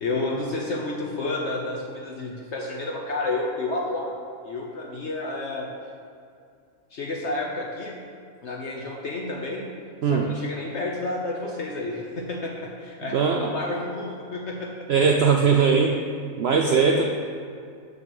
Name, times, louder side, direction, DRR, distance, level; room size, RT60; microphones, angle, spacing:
voice 1, 0.0-4.1 4.4-5.7 6.9-7.9 8.4-9.6 10.1-14.9 15.5-15.8 16.5-16.9, left 2 dB, 60° left, -2 dB, 1.0 m, -30 dB
voice 2, 13.1-13.5 14.9-15.9 16.4-17.0, right 5 dB, 65° right, 2 dB, 0.6 m, -20 dB
6.2 x 6.1 x 5.3 m, 2.4 s
omnidirectional pair, 1.5 m